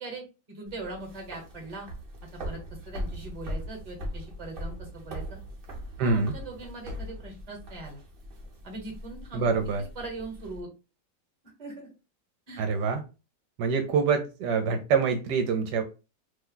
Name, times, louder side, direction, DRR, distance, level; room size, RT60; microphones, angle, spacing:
voice 1, 0.0-1.9 2.4-2.6 2.9-5.4 6.0-8.0 8.6-9.5 10.0-10.7 11.6-11.9 12.5-12.6, right 2 dB, 25° right, 0 dB, 1.0 m, -40 dB
sound 1, 0.7-10.6, equal, 50° right, 0.6 m, -40 dB
voice 2, 6.0-6.3 9.3-9.8 12.6-13.0 13.6-15.8, right 5 dB, 75° right, 5 dB, 1.1 m, -25 dB
3.0 x 2.2 x 3.7 m, 0.31 s
omnidirectional pair, 1.9 m